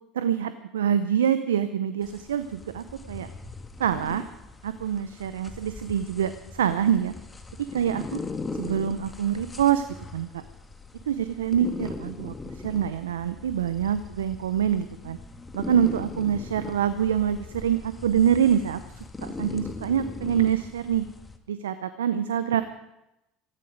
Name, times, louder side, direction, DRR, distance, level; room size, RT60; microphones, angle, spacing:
voice 1, 0.1-3.3 3.8-4.3 4.6-7.1 7.7-8.2 8.6-9.8 10.1-10.4 11.1-15.2 15.5-18.8 19.2-21.0 21.5-22.6, right 9 dB, 85° right, 12 dB, 0.7 m, -25 dB
sound 1, 2.0-21.4, left 3 dB, 20° left, 1.8 m, -40 dB
18.5 x 14.5 x 5.1 m, 0.88 s
hypercardioid pair, 75°, 0 cm